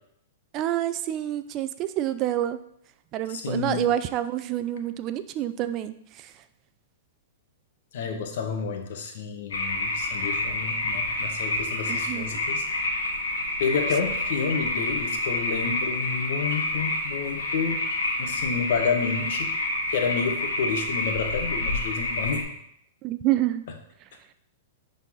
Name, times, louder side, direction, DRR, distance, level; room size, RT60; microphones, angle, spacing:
voice 1, 0.5-2.6 3.1-6.4 11.9-12.4 23.0-23.7, right 12 dB, 35° right, 12 dB, 0.4 m, -28 dB
voice 2, 3.3-3.9 7.9-12.7 13.6-17.9 18.2-19.6 19.9-22.5, left 5 dB, 65° left, 4 dB, 1.4 m, -29 dB
sound 1, 9.5-22.4, left 2 dB, 85° left, 1.8 m, -28 dB
10.0 x 4.2 x 3.8 m, 0.72 s
hypercardioid pair, 135°, 0 cm